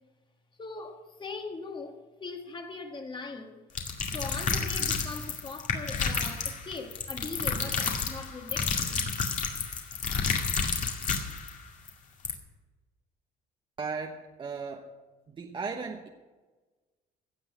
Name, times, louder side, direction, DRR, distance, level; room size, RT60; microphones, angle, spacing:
voice 1, 0.6-3.6 4.1-9.1, left 3 dB, 30° left, 1.7 m, -41 dB
sound 1, 3.7-11.5 11.9-12.0 12.2-12.3, left 5 dB, 45° left, 2.1 m, -30 dB
voice 2, 13.8-14.9 15.3-16.1, right 5 dB, 30° right, 1.0 m, -36 dB
16.5 x 6.2 x 8.3 m
cardioid pair, 110°, 17 cm